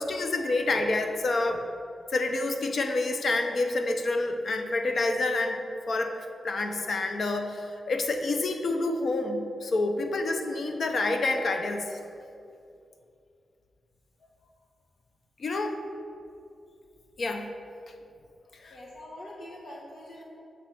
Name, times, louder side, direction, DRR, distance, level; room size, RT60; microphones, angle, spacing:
voice 1, 0.0-1.6 2.1-5.6 5.9-11.9 15.4-15.8 17.2-17.5 18.6-18.7, left 2 dB, 50° left, 5 dB, 0.5 m, -28 dB
voice 2, 18.7-20.2, left 1 dB, 70° left, -5 dB, 1.3 m, -44 dB
6.3 x 3.4 x 5.8 m, 2.5 s
wide cardioid pair, 155°, 0 cm